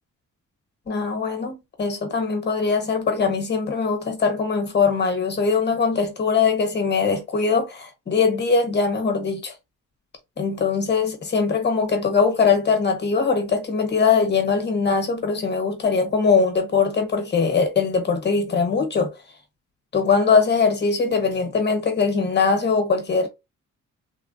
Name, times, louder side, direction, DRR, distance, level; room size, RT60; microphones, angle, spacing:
voice 1, 0.9-9.5 10.4-19.2 19.9-23.3, left 5 dB, 35° left, 1.0 m, -21 dB
3.4 x 2.0 x 2.5 m
cardioid pair, 130°, 32 cm